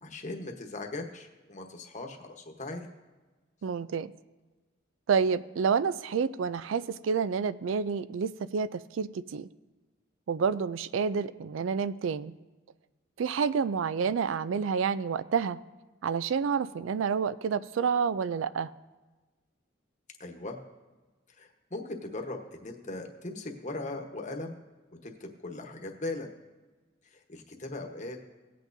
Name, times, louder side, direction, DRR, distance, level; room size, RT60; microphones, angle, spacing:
voice 1, 0.0-2.9 20.2-20.6 21.4-24.6 25.0-26.3 27.1-28.2, left 2 dB, 40° left, 3 dB, 1.1 m, -39 dB
voice 2, 3.6-4.1 5.1-9.5 10.3-12.4 13.2-15.6 16.0-18.7, right 6 dB, 80° right, 16 dB, 0.4 m, -29 dB
18.0 x 8.4 x 2.6 m, 1.2 s
head